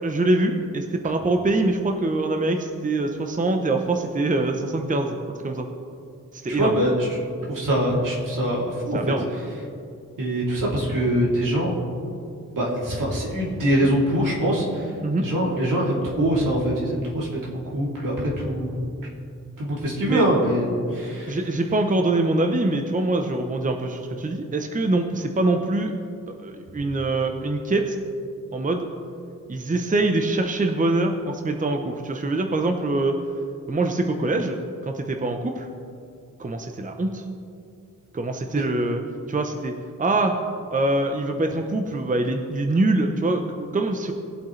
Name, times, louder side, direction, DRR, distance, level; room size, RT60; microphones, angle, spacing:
voice 1, 0.0-5.7 6.3-6.8 8.9-9.2 15.0-15.3 20.1-20.2 21.3-25.9 26.3-28.0 28.5-28.9 29.5-33.2 33.7-34.6 34.8-35.7 36.4-37.2 38.1-39.0 39.3-40.3 40.7-44.1, right 2 dB, 25° right, 4 dB, 0.8 m, -24 dB
voice 2, 6.5-7.2 7.5-9.1 10.2-11.7 12.5-17.3 17.6-18.8 19.6-21.4 38.5-38.6, equal, 75° right, -5 dB, 3.0 m, -23 dB
19.5 x 7.9 x 3.3 m, 2.5 s
wide cardioid pair, 90°, 32 cm